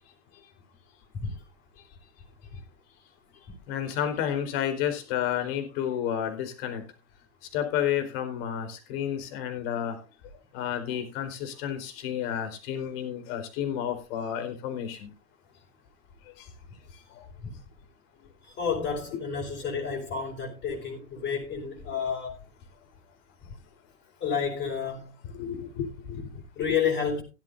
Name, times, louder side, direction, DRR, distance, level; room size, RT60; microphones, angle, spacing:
voice 1, 3.7-6.8 7.5-10.0 10.5-15.1 16.4-16.5 17.2-17.3 25.3-26.4, left 9 dB, 55° left, 4.2 m, -31 dB
voice 2, 18.4-22.4 24.2-25.1 26.6-27.2, left 6 dB, 30° left, 5.3 m, -30 dB
16.0 x 13.0 x 2.6 m
hypercardioid pair, 95°, 35 cm